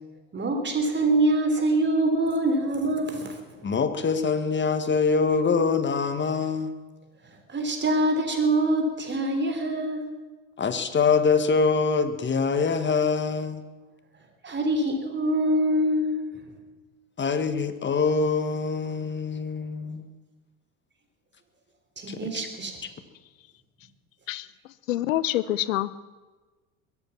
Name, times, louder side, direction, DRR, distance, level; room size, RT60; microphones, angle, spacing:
voice 1, 0.3-3.4 7.5-10.0 14.4-16.4 22.0-22.8, right 1 dB, 25° right, 5 dB, 3.6 m, -24 dB
voice 2, 3.6-6.7 10.6-13.6 17.2-20.1 22.1-22.5, left 5 dB, 30° left, 10 dB, 1.6 m, -24 dB
voice 3, 24.9-25.9, left 14 dB, 75° left, 19 dB, 0.7 m, -26 dB
22.0 x 8.6 x 7.2 m, 1.3 s
figure-of-eight pair, 65°, 40 cm